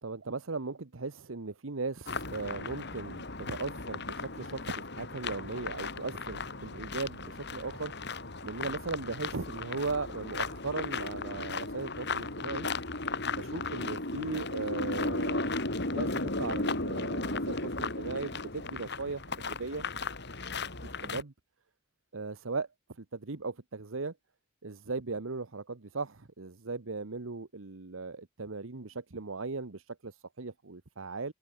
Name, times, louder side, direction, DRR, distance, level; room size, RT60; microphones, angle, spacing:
voice 1, 0.0-12.7 13.3-15.5 15.9-19.8 20.8-21.3 22.1-22.7 23.0-24.1 24.6-31.3, right 3 dB, 90° right, 1.1 m, -38 dB
sound 1, 2.1-21.2, left 3 dB, 60° left, 5.0 m, -36 dB
head